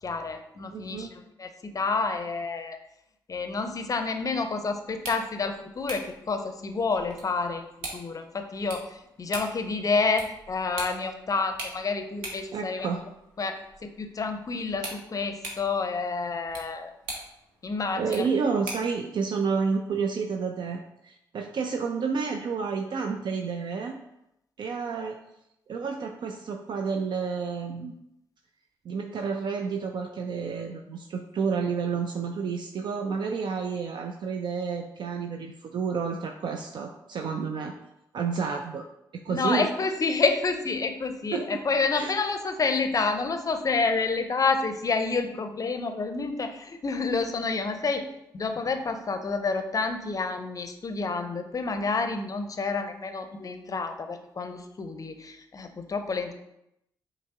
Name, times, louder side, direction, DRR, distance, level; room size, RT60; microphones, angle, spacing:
voice 1, 0.0-2.8 3.3-7.7 7.9-12.9 13.4-16.9 17.6-18.3 39.3-48.0 48.3-56.3, left 4 dB, 40° left, 7 dB, 0.5 m, -29 dB
voice 2, 0.7-1.1 12.5-13.0 18.0-24.0 24.6-25.2 25.7-27.9 28.8-37.7 38.1-38.9 39.1-39.7 41.3-41.6 41.9-42.1, right 5 dB, 55° right, 3 dB, 0.4 m, -30 dB
sound 1, 4.9-19.0, right 2 dB, 85° right, 0.7 m, -43 dB
5.1 x 2.0 x 3.6 m, 0.84 s
hypercardioid pair, 45°, 9 cm